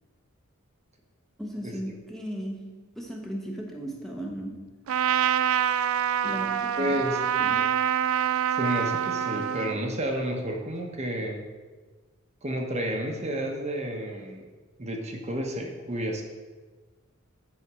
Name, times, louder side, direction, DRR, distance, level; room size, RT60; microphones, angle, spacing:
voice 1, 1.4-4.9 6.2-7.0 7.4-7.8, right 1 dB, ahead, -1 dB, 0.9 m, -37 dB
Trumpet, 4.9-9.8, right 9 dB, 70° right, 0.4 m, -26 dB
voice 2, 6.8-7.2 8.6-11.4 12.4-14.5 14.8-16.2, equal, 30° right, 2 dB, 1.0 m, -31 dB
9.7 x 4.2 x 6.2 m, 1.3 s
head